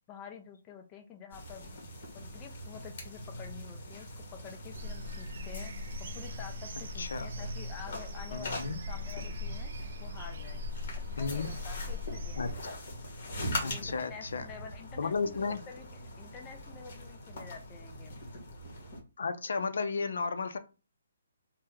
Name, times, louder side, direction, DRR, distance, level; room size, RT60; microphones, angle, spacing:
voice 1, 0.1-1.8 2.1-5.7 6.0-9.7 10.0-10.7 11.0-12.7 13.4-15.4 15.7-18.2, left 7 dB, 20° left, 0.4 m, -49 dB
sound 1, 1.3-19.0, left 1 dB, 45° left, 1.2 m, -42 dB
sound 2, 4.7-12.5, left 2 dB, 55° right, 0.4 m, -40 dB
voice 2, 8.3-8.8 11.2-11.5 12.4-12.5 13.6-14.5 15.0-15.6 19.2-20.6, left 4 dB, 70° left, 0.5 m, -33 dB
2.8 x 2.1 x 3.5 m
hypercardioid pair, 165°, 0 cm